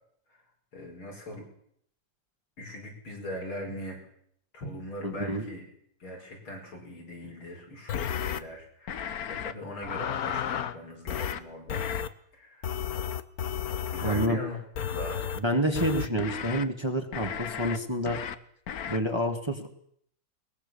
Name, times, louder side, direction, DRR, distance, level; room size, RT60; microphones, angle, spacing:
voice 1, 0.7-1.5 2.6-4.1 4.5-5.7 6.0-11.8 12.3-12.7 13.9-14.6 14.9-15.3, left 1 dB, 90° left, 0 dB, 6.4 m, -40 dB
voice 2, 5.0-5.4 14.0-14.4 15.4-18.2 18.9-19.7, right 1 dB, 15° right, 3 dB, 2.3 m, -28 dB
sound 1, 7.9-8.4 8.9-9.5 9.8-10.7 11.1-11.4 11.7-12.1 12.6-14.3 14.7-15.4 15.7-16.6 17.1-17.8 18.1-18.3 18.7-19.0, left 8 dB, 55° left, 1.3 m, -33 dB
22.0 x 20.5 x 7.3 m, 0.68 s
omnidirectional pair, 2.2 m